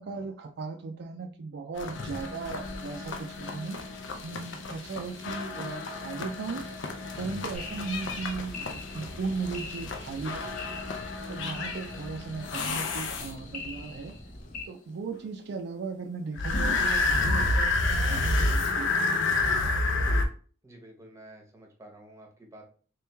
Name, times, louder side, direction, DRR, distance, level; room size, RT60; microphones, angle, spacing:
voice 1, 0.0-6.8 7.2-10.7 11.3-14.1 14.7-19.2, right 4 dB, 55° right, 4 dB, 0.4 m, -37 dB
sound 1, 1.8-13.7 16.4-20.2, left 2 dB, 65° left, 0.5 m, -30 dB
sound 2, 7.5-14.6, left 3 dB, 45° left, 0.9 m, -43 dB
voice 2, 20.6-22.7, right 1 dB, 15° right, 1 dB, 0.8 m, -50 dB
3.3 x 3.0 x 3.4 m, 0.42 s
head